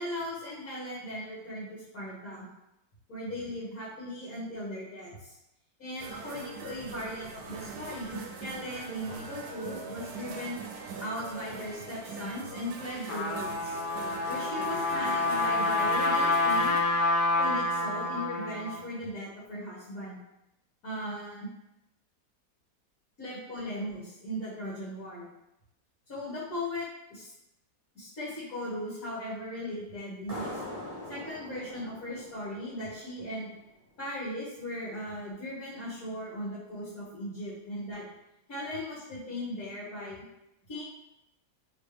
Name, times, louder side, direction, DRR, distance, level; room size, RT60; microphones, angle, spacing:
voice 1, 0.0-2.5 3.1-5.4 5.8-10.6 11.0-13.8 14.3-16.8 17.4-20.2 20.8-21.5 23.2-25.3 26.1-27.3 28.0-30.6 31.1-33.5 34.0-38.0 38.5-40.2 40.7-40.8, equal, 60° left, -10 dB, 1.8 m, -38 dB
sound 1, 6.0-16.8, right 5 dB, 70° right, 1.1 m, -42 dB
Trumpet, 12.8-18.8, left 2 dB, 80° left, 1.6 m, -28 dB
sound 2, 30.3-33.6, left 1 dB, 30° right, 0.8 m, -42 dB
4.2 x 3.4 x 3.3 m, 0.88 s
omnidirectional pair, 1.8 m